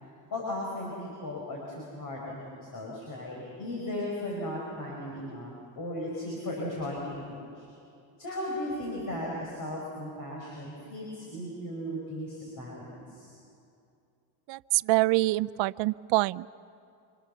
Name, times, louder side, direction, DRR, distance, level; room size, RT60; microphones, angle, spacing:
voice 1, 0.3-7.7 8.2-13.3, left 1 dB, 40° left, -2 dB, 6.1 m, -36 dB
voice 2, 14.5-16.5, right 20 dB, 60° right, 16 dB, 0.6 m, -26 dB
27.5 x 27.0 x 7.0 m, 2.5 s
cardioid pair, 125°, 50 cm